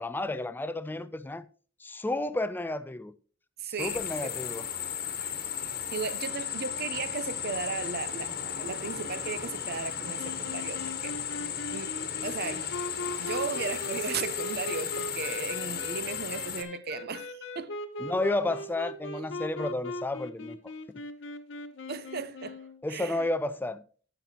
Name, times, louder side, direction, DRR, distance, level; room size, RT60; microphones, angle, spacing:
voice 1, 0.0-1.4 1.8-3.1 3.7-4.7 18.0-21.0 22.8-23.8, left 2 dB, 10° left, 0.3 m, -32 dB
voice 2, 3.6-4.3 5.9-11.1 11.7-11.9 12.2-12.7 13.2-17.7 21.9-23.3, right 5 dB, 55° right, 0.6 m, -36 dB
sound 1, 3.8-16.6, left 8 dB, 50° left, 1.3 m, -35 dB
sound 2, 10.2-22.8, left 1 dB, 70° left, 1.1 m, -39 dB
16.0 x 5.8 x 2.8 m
head